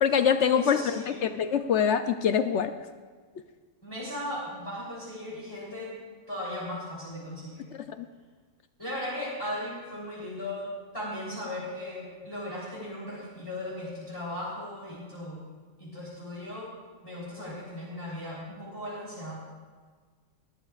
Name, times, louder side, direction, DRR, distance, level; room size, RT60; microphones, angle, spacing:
voice 1, 0.0-2.7 8.0-8.1, left 7 dB, 65° left, 9 dB, 0.8 m, -24 dB
voice 2, 0.5-1.3 3.8-5.9 6.3-7.7 8.8-15.4 15.8-16.7 17.0-19.4, left 1 dB, 15° left, -8 dB, 3.3 m, -37 dB
20.0 x 13.5 x 2.4 m, 1.5 s
omnidirectional pair, 1.5 m